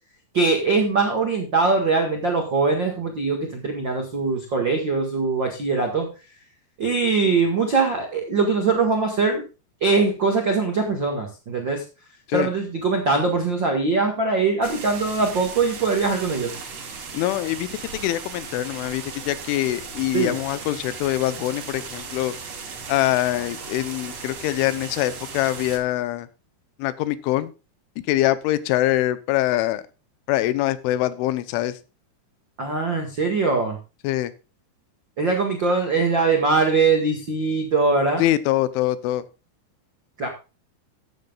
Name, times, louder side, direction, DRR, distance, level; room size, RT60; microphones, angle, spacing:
voice 1, 0.3-6.1 6.8-9.4 9.8-11.8 12.3-16.5 20.1-20.4 32.6-33.8 35.2-38.2 40.2-40.3, right 4 dB, 65° right, 2 dB, 1.1 m, -22 dB
sound 1, 14.6-25.8, right 5 dB, 45° right, 2.6 m, -37 dB
voice 2, 17.1-17.7 18.0-22.4 22.9-26.3 26.8-27.5 28.1-29.8 30.3-31.8 34.0-34.3 38.2-39.2, left 15 dB, 90° left, 15 dB, 3.3 m, -24 dB
14.5 x 9.5 x 2.4 m, 0.30 s
omnidirectional pair, 5.4 m